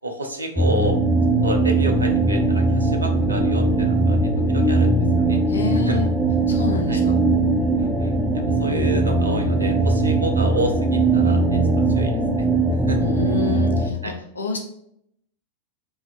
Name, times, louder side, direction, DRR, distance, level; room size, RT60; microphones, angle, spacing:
voice 1, 0.0-1.0 1.4-5.4 5.9-6.0 6.9-7.0 7.8-12.4 12.9-13.0 14.0-14.1, right 1 dB, 80° right, 4 dB, 0.5 m, -30 dB
sound 1, 0.5-13.9, right 2 dB, 5° right, 0.4 m, -20 dB
voice 2, 5.5-6.1 6.5-7.2 13.0-14.6, left 4 dB, 70° left, 3 dB, 0.4 m, -27 dB
4.5 x 2.6 x 2.3 m, 0.73 s
figure-of-eight pair, 90°, 0 cm